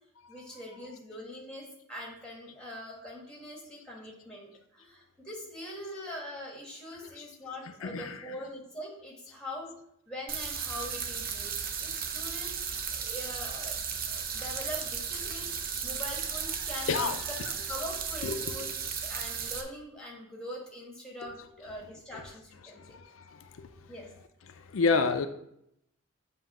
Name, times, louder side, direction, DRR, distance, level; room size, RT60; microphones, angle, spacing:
voice 1, 0.3-9.7 10.1-12.6 12.9-13.8 14.1-17.0 17.7-18.7 19.0-23.0 23.9-24.1, equal, 5° left, -2 dB, 1.4 m, -43 dB
voice 2, 7.8-8.2 16.9-17.2 18.2-18.6 22.8-23.7 24.6-25.3, left 4 dB, 80° left, 8 dB, 0.5 m, -29 dB
sound 1, 10.3-19.6, right 6 dB, 45° right, 0.6 m, -35 dB
7.7 x 2.8 x 5.9 m, 0.76 s
head